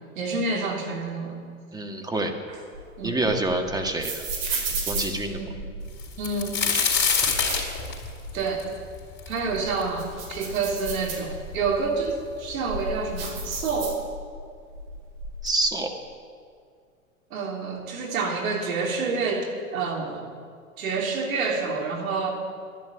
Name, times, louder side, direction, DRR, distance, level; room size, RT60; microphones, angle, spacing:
voice 1, 0.1-1.4 3.0-3.2 5.3-5.5 6.2-6.8 8.3-8.7 9.3-14.0 17.3-20.2 20.8-22.3, right 4 dB, 75° right, 0 dB, 3.4 m, -28 dB
voice 2, 1.7-2.3 3.0-4.2 4.9-5.4 15.4-15.9, right 2 dB, 10° right, 3 dB, 1.7 m, -26 dB
sound 1, 2.5-5.9 6.5-8.3 8.7-8.8 9.3-11.7 12.2-14.4 14.7-15.5, right 3 dB, 45° right, 4.6 m, -34 dB
sound 2, 6.0-9.8 10.3-10.4 11.2-11.3 11.5-12.2 13.1-13.2 13.6-13.8, left 6 dB, 25° left, 4.0 m, -25 dB
11.5 x 11.0 x 9.1 m, 2.2 s
hypercardioid pair, 100°, 42 cm